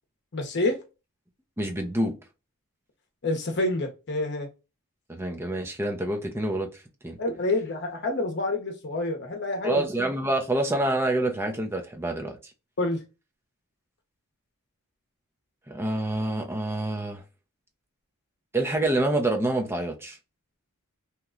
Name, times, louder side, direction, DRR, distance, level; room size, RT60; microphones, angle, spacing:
voice 1, 0.3-0.8 3.2-4.5 7.2-9.9 12.8-13.0, left 2 dB, 50° left, 0.9 m, -27 dB
voice 2, 1.6-2.2 5.1-6.7 7.0-7.2 9.6-12.4 15.7-17.2 18.5-20.2, right 1 dB, 10° right, 0.6 m, -27 dB
3.0 x 2.2 x 3.6 m
head